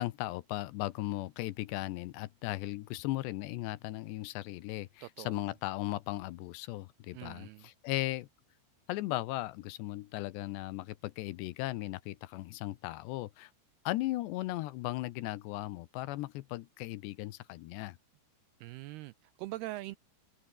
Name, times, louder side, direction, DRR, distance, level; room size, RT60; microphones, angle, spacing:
voice 1, 0.0-8.3 8.9-13.5 13.9-18.0, left 17 dB, 80° left, 2.9 m, -37 dB
voice 2, 5.0-5.5 7.1-7.7 18.6-20.0, right 17 dB, 90° right, 2.3 m, -43 dB
omnidirectional pair, 5.2 m